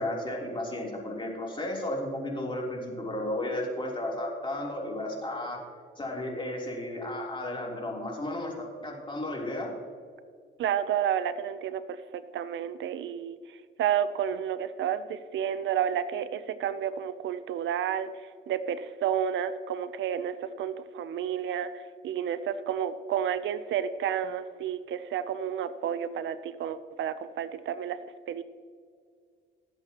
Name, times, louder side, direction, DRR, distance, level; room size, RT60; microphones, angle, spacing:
voice 1, 0.0-5.6 6.0-9.7, left 1 dB, 25° left, -1 dB, 3.4 m, -33 dB
voice 2, 10.6-13.4 13.8-18.1 18.5-28.0 28.3-28.4, right 9 dB, 75° right, 13 dB, 0.6 m, -31 dB
21.0 x 7.9 x 3.0 m, 2.1 s
cardioid pair, 90°, 20 cm